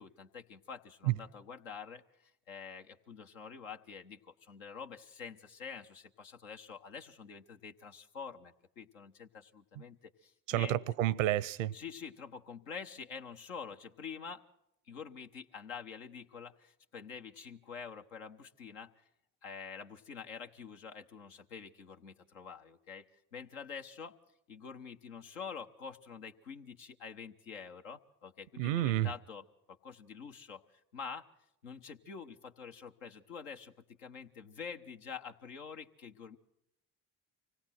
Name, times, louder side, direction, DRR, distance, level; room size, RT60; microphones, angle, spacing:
voice 1, 0.0-10.8 11.7-14.4 14.9-18.9 19.4-23.1 23.3-24.2 24.5-31.3 31.6-33.7 34.0-36.4, left 6 dB, 85° left, 1.2 m, -47 dB
voice 2, 10.5-11.7 28.6-29.1, right 14 dB, 80° right, 0.7 m, -30 dB
25.0 x 17.5 x 5.9 m
hypercardioid pair, 50°, 38 cm